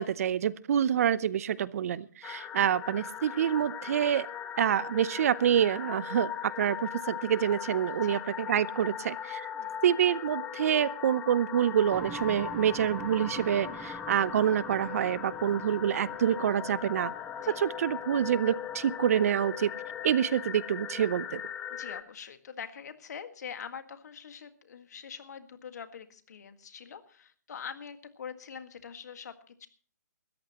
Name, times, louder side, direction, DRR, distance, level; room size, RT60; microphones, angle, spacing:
voice 1, 0.0-4.3 4.6-9.5 9.8-17.1 17.6-19.7 20.0-21.4, right 9 dB, 50° right, 20 dB, 0.6 m, -27 dB
voice 2, 1.8-2.2 8.0-8.2 9.5-9.8 13.6-14.0 17.4-17.6 21.7-29.7, left 7 dB, 65° left, 9 dB, 1.8 m, -44 dB
sound 1, 2.2-22.0, left 9 dB, 15° left, 1.0 m, -39 dB
sound 2, 11.9-21.5, right 6 dB, 10° right, 0.8 m, -48 dB
20.0 x 14.0 x 3.0 m, 0.42 s
hypercardioid pair, 140°, 10 cm